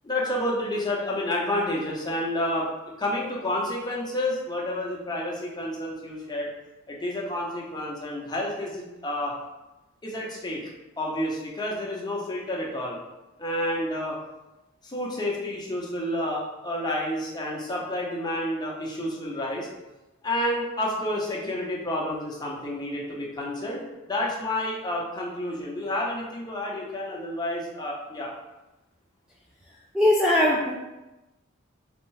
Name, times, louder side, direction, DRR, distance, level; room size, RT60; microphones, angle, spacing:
voice 1, 0.0-2.7 3.0-6.5 6.9-9.4 10.0-10.7 11.0-13.0 13.4-14.2 14.8-19.7 20.2-28.3, left 1 dB, 20° left, -3 dB, 0.7 m, -30 dB
voice 2, 29.9-30.7, left 1 dB, 5° right, -4 dB, 0.3 m, -20 dB
3.7 x 3.5 x 3.2 m, 1.0 s
head